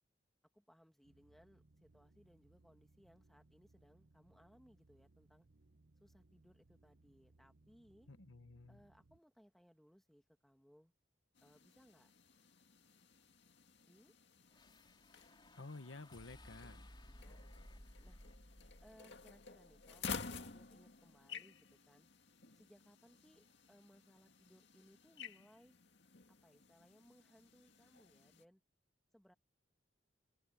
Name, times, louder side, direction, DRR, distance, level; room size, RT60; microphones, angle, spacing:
voice 1, 0.5-5.5 6.0-8.1 8.7-10.9 11.4-12.1 13.9-14.1 17.0-18.2 18.8-22.1 22.5-25.7 26.4-28.6 29.1-29.3, equal, ahead, 1.6 m, -67 dB
sound 1, 1.0-9.2, right 2 dB, 65° right, 1.0 m, -69 dB
voice 2, 8.1-8.8 15.5-16.9, left 3 dB, 80° left, 1.2 m, -52 dB
sound 2, 11.4-28.4, left 5 dB, 60° left, 2.2 m, -53 dB
sound 3, 14.5-20.9, left 1 dB, 25° left, 5.0 m, -60 dB
head